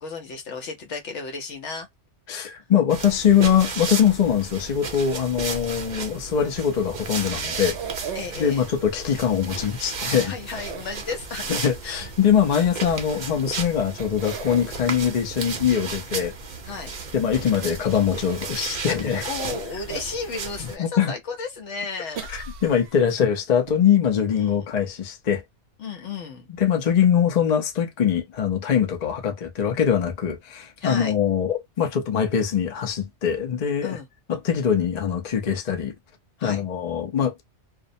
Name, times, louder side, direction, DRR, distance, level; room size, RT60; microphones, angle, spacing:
voice 1, 0.0-1.9 8.1-8.7 10.3-11.5 11.8-12.0 16.6-16.9 19.2-22.4 24.3-24.7 25.8-26.5 30.8-31.1 33.8-34.1 36.4-36.6, left 4 dB, 80° left, 1.0 m, -33 dB
voice 2, 2.3-7.8 8.4-10.3 11.5-16.3 17.1-19.3 20.8-21.1 22.3-25.4 26.6-34.0 34.3-35.9 36.4-37.5, left 8 dB, 45° left, 0.6 m, -22 dB
sound 1, 2.9-20.8, right 4 dB, 50° right, 0.7 m, -34 dB
sound 2, 7.4-8.6 10.5-11.5 13.4-13.5 14.0-14.8 19.1-20.2 20.7-20.8 22.2-23.1 23.7-23.8 24.0-24.1, right 7 dB, 70° right, 0.9 m, -36 dB
2.5 x 2.0 x 2.5 m
omnidirectional pair, 1.2 m